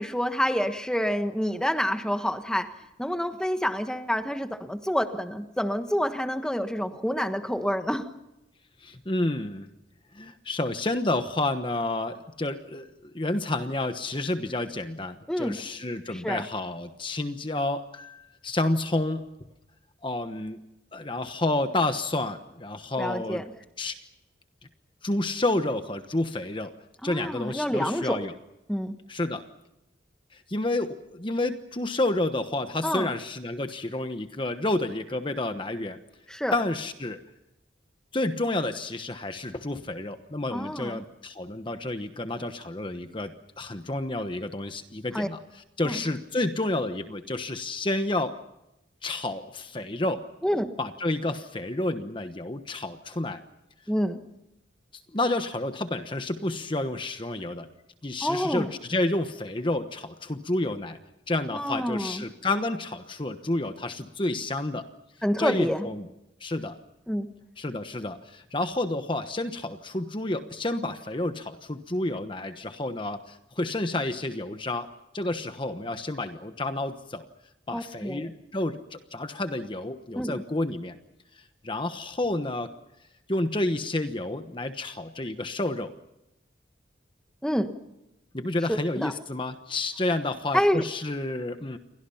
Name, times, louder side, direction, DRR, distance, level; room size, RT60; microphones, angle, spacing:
voice 1, 0.0-2.7 3.0-8.1 15.3-15.6 16.2-16.4 23.0-23.4 27.0-28.2 28.7-29.0 32.8-33.1 36.3-36.5 40.5-41.0 45.1-45.3 45.8-46.0 50.4-50.7 53.9-54.2 58.2-58.7 61.5-62.2 65.2-65.9 67.1-67.3 77.7-78.2 80.1-80.4 87.4-87.7 88.7-89.1 90.5-90.8, equal, 5° left, 7 dB, 1.4 m, -27 dB
voice 2, 8.8-9.7 10.1-19.3 20.0-20.6 20.9-23.4 23.8-23.9 25.0-26.7 27.0-28.3 29.1-29.4 30.3-36.0 36.5-37.2 38.1-48.3 49.0-50.2 50.8-53.4 55.1-57.7 58.0-61.0 61.3-64.8 65.4-66.1 66.4-66.8 67.6-74.9 75.1-77.2 77.7-81.0 81.3-82.7 83.3-85.9 88.3-91.8, left 2 dB, 25° left, 8 dB, 1.1 m, -30 dB
29.5 x 23.5 x 5.7 m, 0.91 s
head